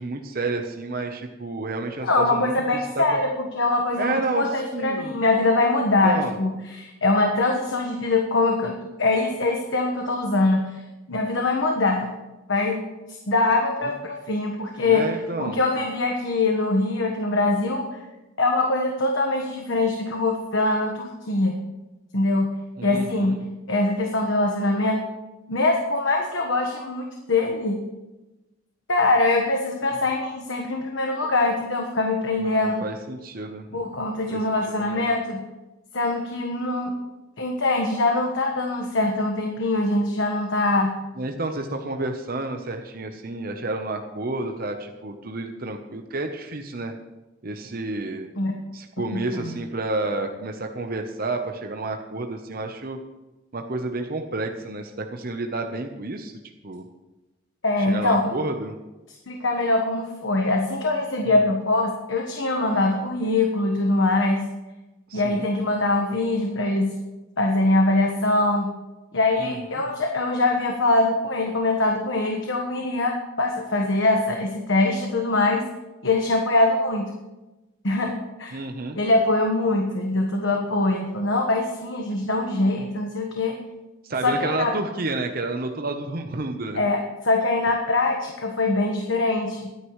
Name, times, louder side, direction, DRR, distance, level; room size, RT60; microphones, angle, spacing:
voice 1, 0.0-2.5 2.9-3.0 4.0-5.1 6.0-6.4 14.8-15.6 22.8-23.4 29.9-30.0 32.4-33.7 34.3-34.4 34.8-35.1 41.2-46.9 47.4-48.3 48.7-53.0 53.5-56.3 56.6-56.8 57.8-58.7 61.3-61.5 65.1-65.4 69.4-69.6 78.5-79.0 84.0-86.8, right 2 dB, 45° right, 4 dB, 0.9 m, -30 dB
voice 2, 2.0-10.8 11.1-12.1 12.5-12.8 13.1-18.0 18.4-21.6 22.1-22.5 22.8-23.4 23.7-25.0 25.5-27.8 28.9-32.8 33.7-35.4 35.9-36.9 37.4-40.9 48.4-48.5 49.1-49.6 57.6-58.3 59.3-64.5 65.1-66.9 67.4-68.7 69.1-75.6 76.0-77.1 77.8-78.6 78.9-83.6 84.2-84.7 86.7-87.0 87.2-89.7, left 2 dB, 65° left, 2 dB, 1.3 m, -23 dB
21.5 x 9.8 x 3.2 m, 1.1 s
head